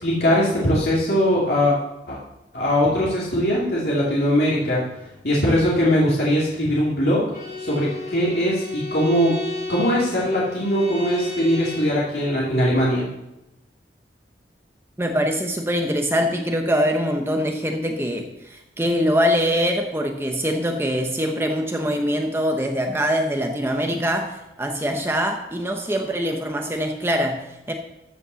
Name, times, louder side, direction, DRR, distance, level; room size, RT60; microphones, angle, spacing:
voice 1, 0.0-1.8 2.1-2.2 2.5-4.8 5.2-7.2 7.6-9.3 9.7-13.0, equal, 65° left, -6 dB, 2.5 m, -20 dB
Bowed string instrument, 7.3-12.0, left 3 dB, 45° left, 4.6 m, -33 dB
voice 2, 15.0-27.7, equal, 15° right, 3 dB, 0.9 m, -23 dB
14.0 x 5.4 x 6.9 m, 0.94 s
head